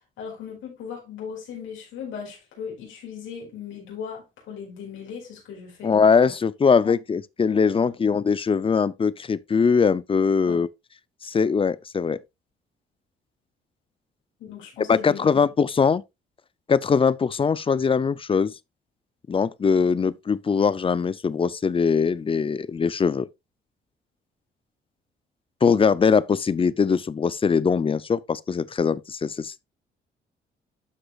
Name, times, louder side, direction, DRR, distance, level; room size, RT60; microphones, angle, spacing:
voice 1, 0.2-6.3 6.8-6.9 7.8-8.0 10.5-10.6 14.4-15.4, left 7 dB, 80° left, 4.7 m, -38 dB
voice 2, 5.8-10.7 11.2-12.2 14.9-16.0 16.7-18.5 19.3-23.3 25.6-29.6, left 5 dB, 25° left, 0.5 m, -21 dB
12.5 x 4.8 x 2.3 m
cardioid pair, 90°, 20 cm